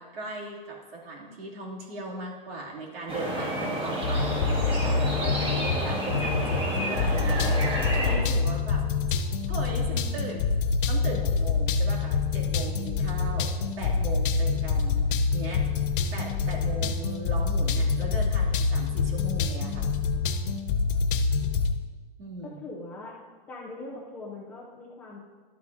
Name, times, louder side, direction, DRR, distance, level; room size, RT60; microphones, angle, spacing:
voice 1, 0.0-8.8 9.5-10.5 10.9-13.5 13.8-15.6 16.1-19.9 22.2-22.6, right 2 dB, 75° right, -3 dB, 2.7 m, -38 dB
sound 1, 3.1-8.2, right 1 dB, 15° right, 1.7 m, -30 dB
sound 2, 4.0-21.8, left 4 dB, 60° left, 0.8 m, -26 dB
voice 2, 16.7-17.2 22.4-23.1 23.5-25.2, left 2 dB, 5° left, -5 dB, 0.4 m, -41 dB
12.0 x 8.2 x 2.7 m, 1.4 s
hypercardioid pair, 160°, 29 cm